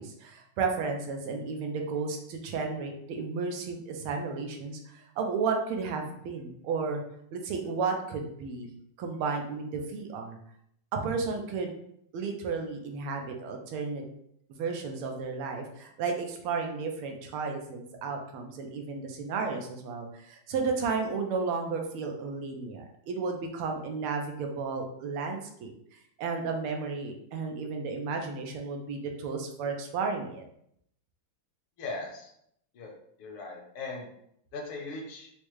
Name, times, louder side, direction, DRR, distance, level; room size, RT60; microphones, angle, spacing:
voice 1, 0.0-7.0 7.3-8.7 9.0-10.4 10.9-11.7 12.1-14.0 14.5-30.4, right 4 dB, 90° right, 3 dB, 1.5 m, -33 dB
voice 2, 31.8-32.3 32.7-32.9 33.2-34.1 34.5-35.3, left 3 dB, 75° left, -1 dB, 1.6 m, -39 dB
4.9 x 2.1 x 3.0 m, 0.72 s
omnidirectional pair, 2.4 m